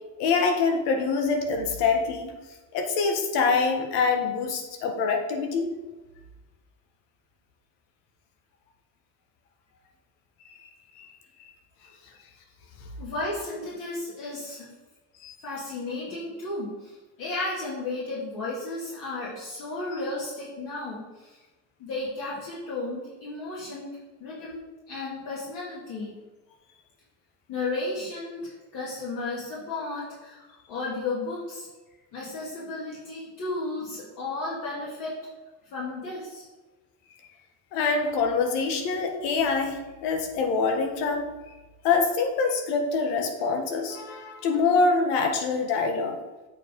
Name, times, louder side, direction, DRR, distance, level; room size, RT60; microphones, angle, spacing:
voice 1, 0.2-2.3 2.7-5.7 11.0-11.1 15.2-15.4 37.7-41.3 41.8-46.2, left 4 dB, 80° left, 4 dB, 1.6 m, -25 dB
voice 2, 13.0-14.7 15.4-21.4 21.8-23.9 24.2-26.1 27.5-31.7 32.1-35.2 35.7-36.5, left 2 dB, 55° left, -6 dB, 2.4 m, -34 dB
8.2 x 4.9 x 5.2 m, 1.2 s
cardioid pair, 155°, 40 cm